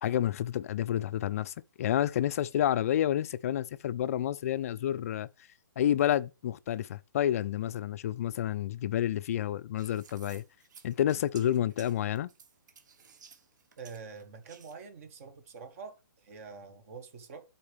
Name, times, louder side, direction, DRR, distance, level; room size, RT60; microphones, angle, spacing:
voice 1, 0.0-5.3 5.8-10.4 10.8-12.3, left 11 dB, 45° left, 0.4 m, -29 dB
sound 1, 9.8-14.8, right 6 dB, 60° right, 1.3 m, -55 dB
voice 2, 13.8-17.4, right 5 dB, 40° right, 1.6 m, -46 dB
11.5 x 4.3 x 3.4 m
hypercardioid pair, 155°, 11 cm